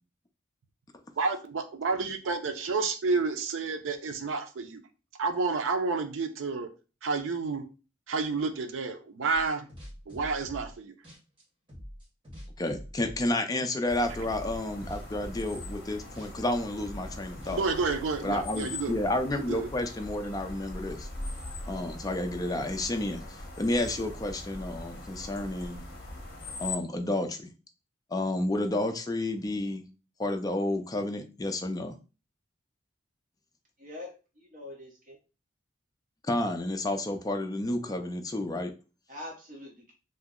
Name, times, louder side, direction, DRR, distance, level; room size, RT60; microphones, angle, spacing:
voice 1, 1.2-4.8 5.2-6.7 7.0-7.6 8.1-9.7 10.1-10.9 17.5-18.9 19.3-19.7, right 4 dB, 85° right, 7 dB, 0.5 m, -30 dB
sound 1, 9.3-10.8 11.0-13.3 13.6-14.0 14.2-18.1, equal, 25° right, 1.3 m, -46 dB
voice 2, 12.6-17.6 18.2-21.1 21.7-25.8 26.6-27.5 28.1-29.8 30.2-31.9 36.3-38.7, left 1 dB, 20° left, 5 dB, 0.4 m, -31 dB
sound 2, 13.9-26.8, left 2 dB, 55° left, 0.8 m, -41 dB
voice 3, 33.8-35.2 39.1-39.9, left 2 dB, 40° right, -2 dB, 1.0 m, -44 dB
2.7 x 2.0 x 3.6 m, 0.32 s
head